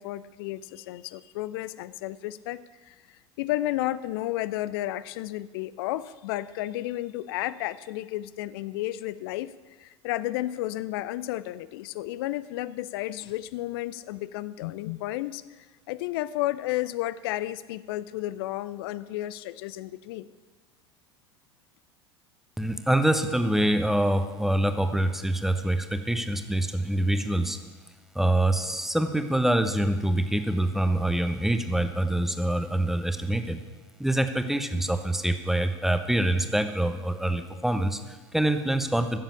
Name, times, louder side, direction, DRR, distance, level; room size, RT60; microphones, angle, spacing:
voice 1, 0.0-9.5 9.8-20.3, left 15 dB, 55° left, 16 dB, 0.5 m, -32 dB
voice 2, 22.6-27.6 28.1-33.6 34.0-39.2, right 1 dB, ahead, 8 dB, 1.1 m, -25 dB
15.0 x 7.4 x 7.1 m, 1.3 s
figure-of-eight pair, 75°, 15 cm